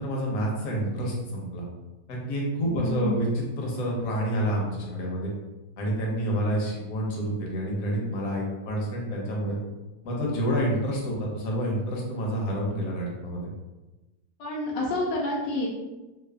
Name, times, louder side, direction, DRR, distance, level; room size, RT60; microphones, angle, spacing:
voice 1, 0.0-1.6 2.1-5.3 5.8-9.6 10.0-13.5, equal, 65° left, -2 dB, 1.0 m, -28 dB
voice 2, 2.6-3.2 14.4-15.7, left 1 dB, 85° left, -4 dB, 1.2 m, -29 dB
3.2 x 2.0 x 2.2 m, 1.1 s
omnidirectional pair, 1.8 m